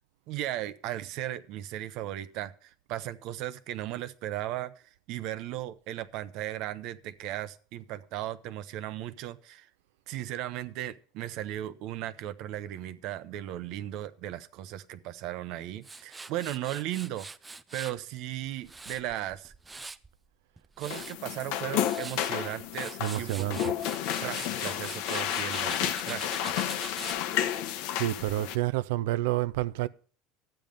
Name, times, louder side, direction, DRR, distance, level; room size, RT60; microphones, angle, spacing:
voice 1, 0.3-4.7 5.1-9.7 10.1-17.3 17.7-19.5 20.8-23.8 24.2-26.8, right 13 dB, 50° right, 0.8 m, -36 dB
Tools, 15.8-18.0 18.5-20.1 20.6-21.1 21.7-22.2 22.6-27.2, right 3 dB, 10° right, 0.4 m, -43 dB
sound 1, 20.9-28.6, left 11 dB, 60° left, 1.0 m, -31 dB
voice 2, 23.0-23.6 27.9-29.9, right 15 dB, 80° right, 0.5 m, -29 dB
12.5 x 9.0 x 5.2 m
cardioid pair, 165°, 0 cm